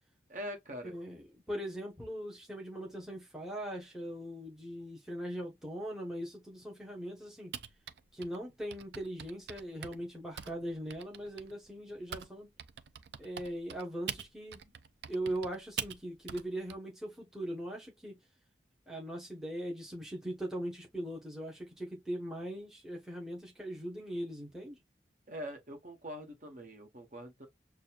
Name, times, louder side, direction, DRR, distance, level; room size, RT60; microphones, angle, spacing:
voice 1, 0.3-0.9 25.3-27.5, equal, 45° right, 1.3 m, -43 dB
voice 2, 0.8-7.6 8.1-12.5 13.2-14.7 15.1-18.2 18.9-24.8, right 1 dB, 5° right, 1.1 m, -40 dB
Typing, 7.5-12.3 12.6-16.8, right 9 dB, 75° right, 0.4 m, -43 dB
6.4 x 2.3 x 2.4 m
head